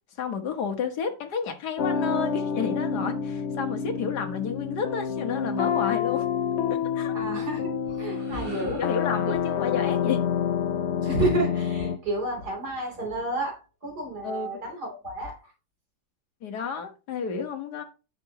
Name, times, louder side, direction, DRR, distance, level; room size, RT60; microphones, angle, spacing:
voice 1, 0.2-6.3 6.7-7.1 8.6-10.2 14.2-14.5 16.4-17.8, left 6 dB, 60° left, 1.9 m, -31 dB
sound 1, 1.8-12.0, left 7 dB, 80° left, 0.6 m, -28 dB
voice 2, 7.1-8.8 9.3-9.4 11.0-15.5, right 2 dB, 55° right, 3.9 m, -31 dB
sound 2, 7.7-12.2, right 1 dB, 30° right, 3.3 m, -51 dB
9.7 x 6.5 x 2.9 m
omnidirectional pair, 2.0 m